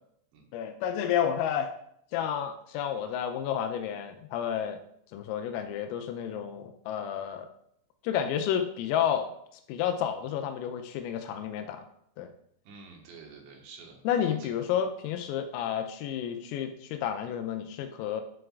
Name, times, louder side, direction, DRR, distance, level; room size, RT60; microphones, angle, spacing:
voice 1, 0.5-1.7 2.1-4.8 5.1-7.5 8.0-9.3 9.7-11.9 12.2-12.3 14.1-18.2, left 9 dB, 85° left, 6 dB, 3.4 m, -31 dB
voice 2, 12.7-14.5, right 4 dB, 70° right, 0 dB, 3.4 m, -49 dB
11.5 x 7.8 x 2.5 m, 0.73 s
omnidirectional pair, 6.0 m